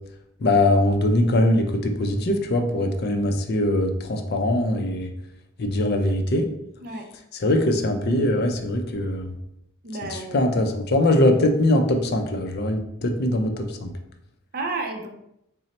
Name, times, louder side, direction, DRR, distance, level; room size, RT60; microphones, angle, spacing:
voice 1, 0.4-5.1 5.6-6.5 7.4-9.3 10.1-13.9, left 1 dB, 45° left, 5 dB, 0.4 m, -22 dB
voice 2, 9.8-10.4 11.0-11.2 14.5-15.1, right 3 dB, 45° right, 3 dB, 0.5 m, -31 dB
4.0 x 2.0 x 4.1 m, 0.78 s
head